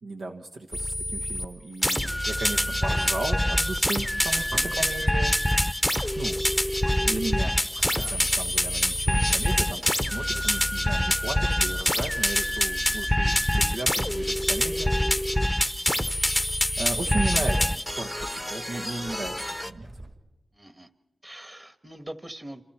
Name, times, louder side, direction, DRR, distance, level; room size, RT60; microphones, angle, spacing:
voice 1, 0.0-5.3 6.2-6.4 7.0-7.6 7.9-14.9 16.8-19.9, right 2 dB, 85° right, 1 dB, 1.3 m, -35 dB
sound 1, 0.7-1.5 1.8-19.7, left 1 dB, 5° left, 0.8 m, -25 dB
sound 2, 2.3-20.2, right 1 dB, 40° right, 3.4 m, -47 dB
voice 2, 7.8-8.2 20.5-20.9 21.2-22.6, right 1 dB, 20° right, 10 dB, 1.5 m, -42 dB
27.5 x 27.0 x 4.4 m, 1.1 s
cardioid pair, 60°, 0 cm